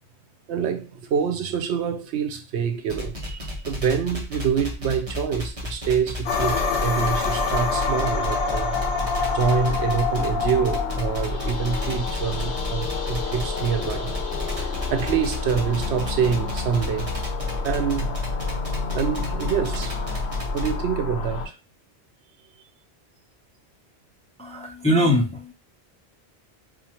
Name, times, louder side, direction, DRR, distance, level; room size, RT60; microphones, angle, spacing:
voice 1, 0.5-8.8 9.3-14.1 14.6-17.1 17.6-18.2 18.9-20.2 20.5-21.6, right 7 dB, 85° right, 0.9 m, -26 dB
sound 1, 2.9-20.8, left 2 dB, 35° right, 1.0 m, -31 dB
sound 2, 6.3-21.5, left 4 dB, 80° left, 1.0 m, -28 dB
voice 2, 24.4-25.5, equal, 10° left, 0.4 m, -22 dB
4.3 x 2.5 x 2.8 m
omnidirectional pair, 1.1 m